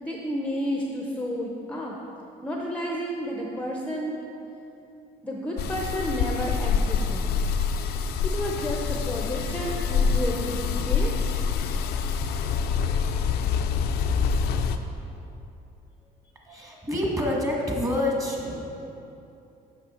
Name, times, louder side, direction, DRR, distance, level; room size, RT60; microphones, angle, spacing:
voice 1, 0.0-2.0 2.4-4.2 5.2-7.2 8.2-11.1, equal, 5° left, -1 dB, 0.7 m, -31 dB
sound 1, 5.6-14.8, left 6 dB, 75° left, 0.5 m, -26 dB
voice 2, 16.4-18.7, left 1 dB, 20° right, -2 dB, 1.6 m, -27 dB
8.0 x 5.9 x 4.4 m, 2.8 s
cardioid pair, 110°, 17 cm